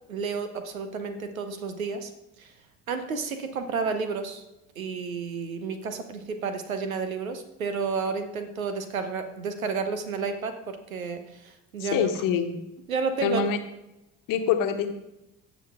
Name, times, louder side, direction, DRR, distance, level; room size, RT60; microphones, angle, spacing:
voice 1, 0.1-2.1 2.4-2.5 2.9-4.4 4.7-12.1 12.9-13.4, right 5 dB, 80° right, 9 dB, 1.1 m, -31 dB
voice 2, 11.8-12.6 13.2-13.6 14.3-14.9, left 7 dB, 50° left, 6 dB, 1.2 m, -25 dB
16.0 x 6.4 x 3.6 m, 0.92 s
figure-of-eight pair, 55°, 41 cm